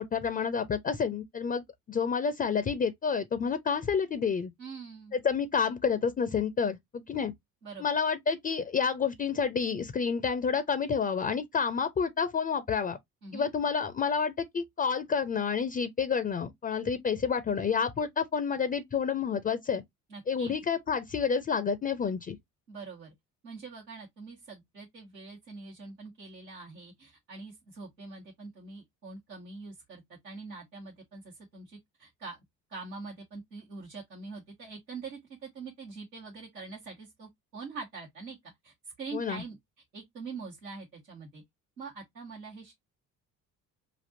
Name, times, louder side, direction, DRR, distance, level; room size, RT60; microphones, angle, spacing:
voice 1, 0.0-4.5 5.1-7.3 7.8-13.0 13.3-19.8 20.3-22.4 39.1-39.4, left 6 dB, 20° left, 0.5 m, -29 dB
voice 2, 4.6-5.1 7.6-7.9 13.2-13.5 20.1-20.5 22.7-23.1 23.4-32.4 32.7-38.4 38.6-39.6 39.9-41.4 41.8-42.7, right 4 dB, 90° right, 1.2 m, -44 dB
5.2 x 2.5 x 2.6 m
figure-of-eight pair, 50°, 49 cm